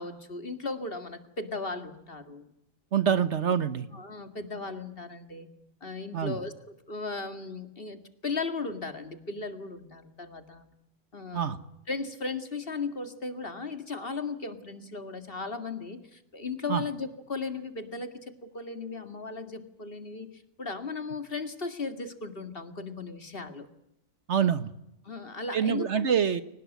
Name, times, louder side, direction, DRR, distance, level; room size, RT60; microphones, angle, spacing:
voice 1, 0.0-2.5 3.1-3.2 3.9-5.5 5.8-10.7 11.1-11.6 11.9-23.7 25.0-26.1, left 4 dB, 45° left, 9 dB, 2.3 m, -36 dB
voice 2, 2.9-3.9 6.1-6.4 11.3-11.6 16.7-16.8 24.3-24.7 25.5-26.4, right 8 dB, 60° right, 14 dB, 1.3 m, -25 dB
23.0 x 19.5 x 9.3 m, 0.84 s
omnidirectional pair, 1.4 m